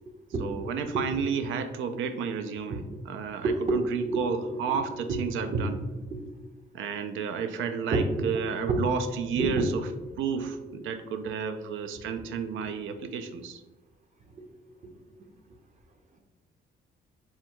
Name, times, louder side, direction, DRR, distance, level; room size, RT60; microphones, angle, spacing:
voice 1, 0.4-5.8 6.7-9.8 10.2-13.6, right 6 dB, 80° right, 8 dB, 0.4 m, -32 dB
voice 2, 3.4-4.8 5.1-5.2 5.5-5.6 6.1-6.2 7.9-8.3 8.7-8.8 9.4-9.7, right 3 dB, 35° right, 4 dB, 0.7 m, -28 dB
3.5 x 2.2 x 4.4 m, 1.1 s
cardioid pair, 90°, 20 cm